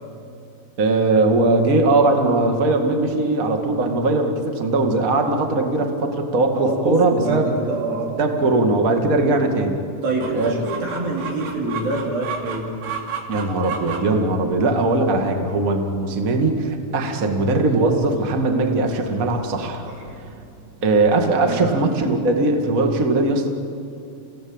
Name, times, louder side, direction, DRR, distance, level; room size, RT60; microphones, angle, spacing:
voice 1, 0.8-7.5 8.2-9.8 10.3-10.6 13.3-19.9 20.8-23.5, right 2 dB, 85° right, 4 dB, 0.7 m, -20 dB
voice 2, 6.5-8.2 10.0-12.7 19.8-20.0 21.5-21.8, right 2 dB, 50° right, -2 dB, 5.4 m, -26 dB
Chicken rooster, 10.2-21.3, right 6 dB, 70° right, 4.6 m, -36 dB
29.5 x 17.5 x 8.8 m, 2.7 s
omnidirectional pair, 5.4 m